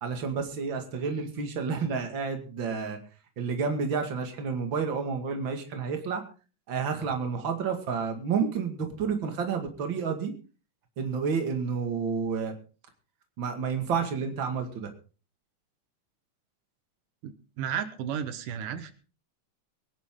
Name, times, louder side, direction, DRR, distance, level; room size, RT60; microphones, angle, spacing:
voice 1, 0.0-3.0 3.4-6.2 6.7-10.3 11.0-12.5 13.4-14.9, right 5 dB, 40° right, 5 dB, 2.5 m, -30 dB
voice 2, 17.2-18.9, right 8 dB, 90° right, 11 dB, 2.8 m, -33 dB
23.0 x 10.5 x 3.8 m, 0.37 s
omnidirectional pair, 3.7 m